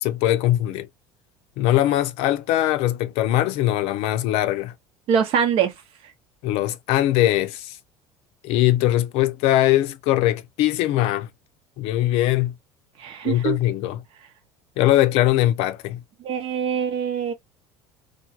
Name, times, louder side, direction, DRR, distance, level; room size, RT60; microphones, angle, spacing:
voice 1, 0.0-0.9 1.6-4.7 6.4-7.8 8.4-11.3 11.8-12.5 13.2-14.0 14.8-16.0, left 14 dB, 65° left, 0.4 m, -21 dB
voice 2, 5.1-5.7 13.0-13.6 16.2-17.3, right 8 dB, 60° right, 0.9 m, -23 dB
2.3 x 2.2 x 2.7 m
hypercardioid pair, 85°, 11 cm